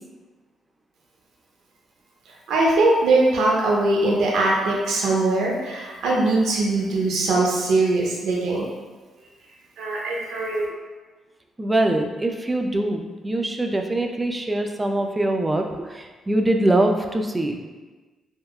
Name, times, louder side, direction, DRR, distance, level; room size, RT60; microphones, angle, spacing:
voice 1, 2.5-8.7 9.8-10.7, right 2 dB, 80° right, -3 dB, 0.6 m, -21 dB
voice 2, 11.6-17.6, right 1 dB, 20° right, 4 dB, 0.3 m, -23 dB
3.5 x 2.1 x 2.3 m, 1.3 s
cardioid pair, 90°, 0 cm